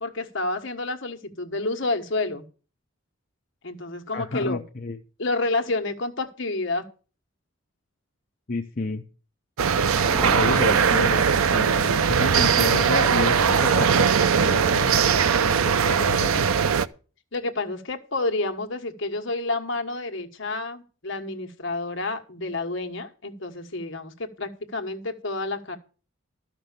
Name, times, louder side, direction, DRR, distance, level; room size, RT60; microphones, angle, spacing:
voice 1, 0.0-2.5 3.6-4.6 5.2-6.9 10.5-10.9 17.3-25.8, left 2 dB, 60° left, 6 dB, 1.5 m, -29 dB
voice 2, 4.1-5.0 8.5-9.0 10.3-14.1 14.4-15.0 15.5-16.5, left 3 dB, 40° left, 2 dB, 0.7 m, -30 dB
sound 1, 9.6-16.9, right 6 dB, 85° right, 0.6 m, -20 dB
sound 2, 10.1-12.3, right 1 dB, 15° right, 0.6 m, -34 dB
13.0 x 6.0 x 6.7 m, 0.37 s
head